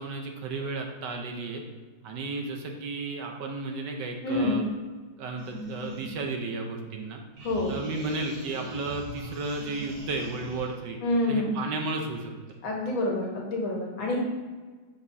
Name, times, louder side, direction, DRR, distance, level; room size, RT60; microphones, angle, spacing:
voice 1, 0.0-1.6 2.0-4.6 5.2-7.2 7.7-11.0 11.3-12.3, right 3 dB, 70° right, 3 dB, 1.3 m, -33 dB
voice 2, 4.2-4.6 7.4-7.7 11.0-11.5 12.6-14.2, left 2 dB, 80° left, -1 dB, 2.1 m, -27 dB
sound 1, 5.4-7.0 7.4-10.8, equal, 85° right, 2.5 m, -42 dB
7.8 x 5.0 x 2.7 m, 1.4 s
omnidirectional pair, 2.1 m